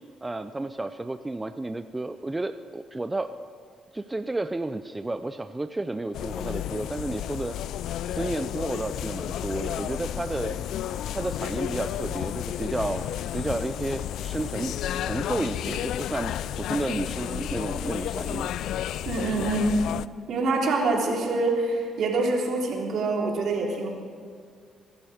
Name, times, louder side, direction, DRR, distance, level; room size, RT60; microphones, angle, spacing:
voice 1, 0.2-3.3 3.9-7.6 8.1-10.5 11.1-13.1 13.3-14.7 15.0-18.5, right 2 dB, 15° right, 9 dB, 0.5 m, -31 dB
sound 1, 6.1-20.1, left 11 dB, 80° left, 0.3 m, -32 dB
voice 2, 19.0-19.8 20.3-23.9, right 2 dB, 70° right, -1 dB, 3.2 m, -25 dB
23.5 x 11.5 x 5.0 m, 2.1 s
cardioid pair, 90°, 0 cm